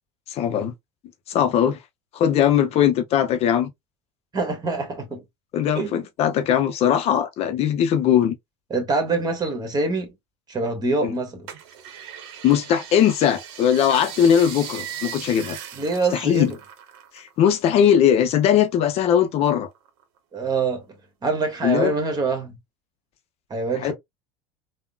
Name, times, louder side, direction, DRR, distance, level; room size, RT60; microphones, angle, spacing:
voice 1, 0.3-0.7 1.3-1.8 2.1-3.7 5.5-8.3 11.0-11.1 12.4-15.6 16.1-16.5 17.1-19.7 21.6-21.9 23.8-23.9, left 9 dB, 45° left, 0.5 m, -20 dB
voice 2, 4.3-5.2 5.7-5.9 8.7-10.1 10.5-11.5 15.7-16.6 20.3-21.0 21.2-22.6 23.5-23.9, right 3 dB, 30° right, 1.3 m, -25 dB
sound 1, 11.5-17.3 17.6-18.9 19.3-20.2 20.7-20.8, right 9 dB, 65° right, 0.8 m, -38 dB
3.5 x 2.1 x 2.2 m
hypercardioid pair, 80°, 14 cm